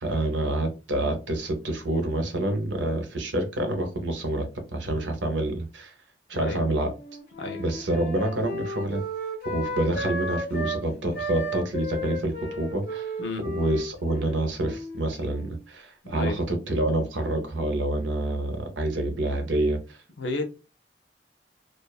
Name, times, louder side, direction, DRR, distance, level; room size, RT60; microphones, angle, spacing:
voice 1, 0.0-4.4 4.7-5.9 6.3-6.9 7.6-9.0 9.4-13.1 13.4-20.0, right 1 dB, 90° right, 0.8 m, -27 dB
Wind instrument woodwind instrument, 6.8-10.8 11.1-15.6, right 1 dB, 60° left, 1.2 m, -34 dB
voice 2, 16.0-16.4 20.2-20.4, left 2 dB, 85° left, 0.7 m, -32 dB
2.5 x 2.4 x 2.3 m
head